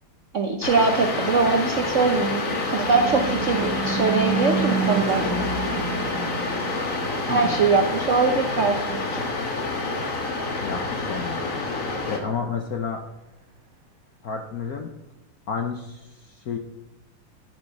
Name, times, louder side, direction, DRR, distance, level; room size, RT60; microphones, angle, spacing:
voice 1, 0.3-5.2 7.3-9.2, right 4 dB, 65° right, 4 dB, 0.7 m, -22 dB
sound 1, 0.6-12.2, left 3 dB, 40° left, 1.6 m, -28 dB
Car passing by / Truck / Engine, 1.7-10.3, right 4 dB, 40° right, 1.8 m, -31 dB
voice 2, 7.3-7.7 10.6-13.0 14.2-14.9 15.5-16.6, left 6 dB, 65° left, 4 dB, 0.9 m, -31 dB
11.0 x 7.2 x 5.4 m, 1.0 s
omnidirectional pair, 2.4 m